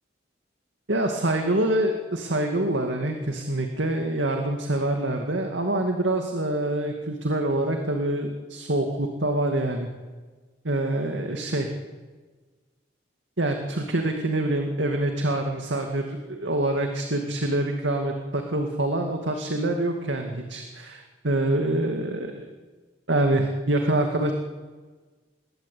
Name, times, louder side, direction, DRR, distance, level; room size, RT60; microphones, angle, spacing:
voice 1, 0.9-9.9 10.6-11.7 13.4-22.5 23.1-24.3, right 1 dB, 90° right, 4 dB, 2.4 m, -26 dB
28.5 x 21.0 x 8.6 m, 1.4 s
head